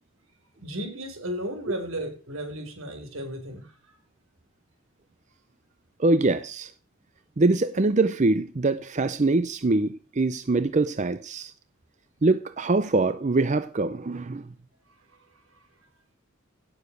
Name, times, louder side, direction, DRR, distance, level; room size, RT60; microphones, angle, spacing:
voice 1, 0.6-4.0, equal, 75° right, 4.4 m, -34 dB
voice 2, 6.0-6.7 7.4-11.5 12.2-14.5, right 2 dB, 35° right, 0.6 m, -23 dB
17.0 x 7.1 x 6.4 m
head